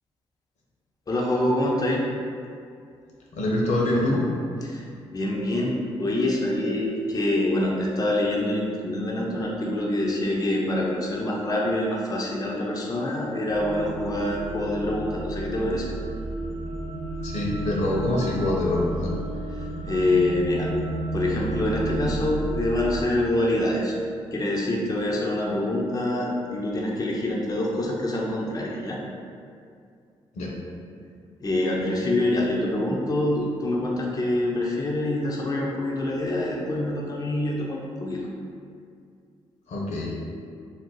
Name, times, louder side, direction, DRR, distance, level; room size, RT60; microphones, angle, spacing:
voice 1, 1.1-2.0 4.6-15.9 19.6-20.7 21.1-23.9 24.3-29.0 31.4-38.3, left 1 dB, 30° left, -3 dB, 0.5 m, -26 dB
voice 2, 3.3-4.2 17.2-19.1 30.4-30.5 39.7-40.1, left 1 dB, 70° left, -3 dB, 0.7 m, -25 dB
sound 1, 13.5-23.0, right 2 dB, 50° right, 0.6 m, -32 dB
2.5 x 2.1 x 3.7 m, 2.3 s
supercardioid pair, 50°, 12 cm